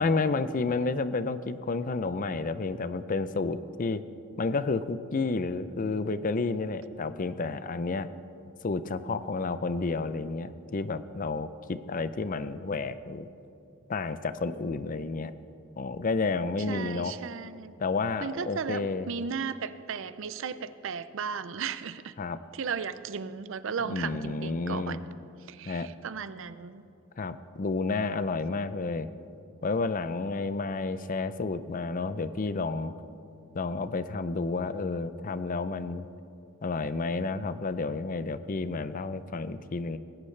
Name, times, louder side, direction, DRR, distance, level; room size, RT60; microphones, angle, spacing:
voice 1, 0.0-4.0 4.4-8.1 8.6-13.3 13.9-15.3 15.8-17.1 17.8-19.1 22.2-22.4 23.8-25.0 25.7-25.9 27.2-29.1 29.6-32.9 33.5-36.1 36.6-40.0, left 3 dB, 40° left, 13 dB, 0.5 m, -30 dB
voice 2, 16.7-17.7 18.2-22.2 22.5-25.0 25.5-26.8, right 6 dB, 65° right, 14 dB, 0.5 m, -35 dB
19.5 x 16.5 x 3.3 m, 2.6 s
head